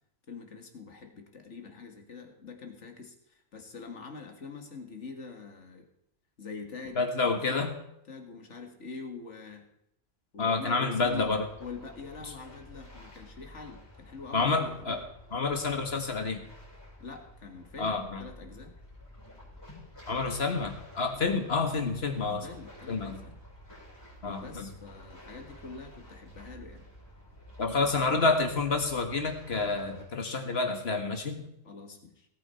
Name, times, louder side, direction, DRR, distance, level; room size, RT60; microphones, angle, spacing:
voice 1, 0.3-3.2 3.5-5.9 6.4-7.0 7.3-7.7 8.1-9.6 10.3-11.3 11.6-15.0 17.0-18.8 22.4-23.4 24.4-26.8 31.7-32.3, left 4 dB, 75° left, 4 dB, 2.1 m, -44 dB
voice 2, 7.0-7.7 10.4-11.5 12.2-12.3 14.3-15.0 15.3-16.4 17.8-18.3 20.1-22.5 22.9-23.2 24.2-24.7 27.6-31.5, left 3 dB, 55° left, 5 dB, 1.9 m, -29 dB
sound 1, 10.9-30.1, equal, 20° left, 6.1 m, -51 dB
18.0 x 9.1 x 4.4 m, 0.79 s
omnidirectional pair, 1.2 m